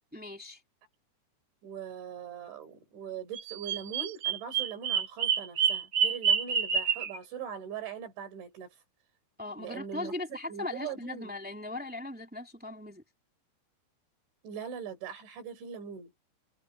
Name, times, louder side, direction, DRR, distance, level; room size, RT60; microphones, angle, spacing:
voice 1, 0.1-0.6 9.4-13.0, left 2 dB, 5° right, 1.1 m, -39 dB
voice 2, 1.6-8.8 9.6-10.1 10.5-11.3 14.4-16.1, right 7 dB, 75° right, 7.0 m, -41 dB
Bird vocalization bird call bird song, 3.3-7.2, right 7 dB, 55° right, 1.6 m, -28 dB
omnidirectional pair, 5.4 m